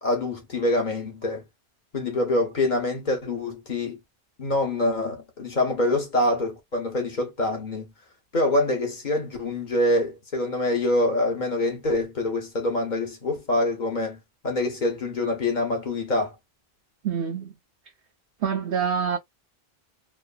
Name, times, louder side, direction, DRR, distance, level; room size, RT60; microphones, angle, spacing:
voice 1, 0.0-1.4 1.9-4.0 4.4-7.8 8.3-14.2 14.4-16.3, left 1 dB, 50° left, 1.0 m, -25 dB
voice 2, 17.0-17.5 18.4-19.2, right 7 dB, 65° right, 0.9 m, -26 dB
3.2 x 2.0 x 2.3 m
omnidirectional pair, 1.1 m